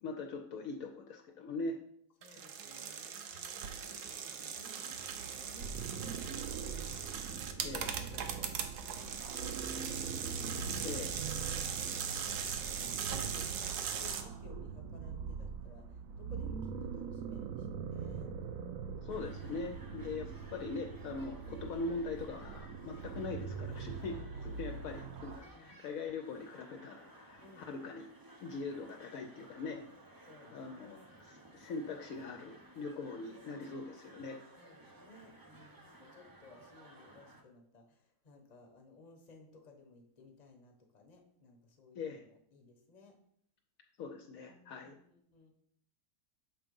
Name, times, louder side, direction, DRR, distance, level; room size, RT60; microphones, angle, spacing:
voice 1, 0.0-1.8 2.3-2.4 7.6-7.9 10.8-11.1 19.0-24.2 24.4-28.0 28.4-29.8 30.5-31.0 31.3-34.4 42.0-42.2 44.0-45.0, left 3 dB, 70° left, 3 dB, 1.0 m, -42 dB
voice 2, 2.2-6.7 7.2-10.0 10.4-12.5 12.8-18.4 19.8-20.5 24.1-24.9 25.4-25.8 27.4-27.7 30.2-31.1 34.6-43.2 44.2-45.5, left 3 dB, 30° left, 4 dB, 0.9 m, -58 dB
sound 1, 2.2-14.2, right 7 dB, 85° right, 1.2 m, -40 dB
sound 2, 5.6-25.4, right 6 dB, 65° right, 1.0 m, -43 dB
sound 3, 19.1-37.4, right 1 dB, 35° right, 0.3 m, -57 dB
6.7 x 3.6 x 5.2 m, 0.69 s
omnidirectional pair, 1.6 m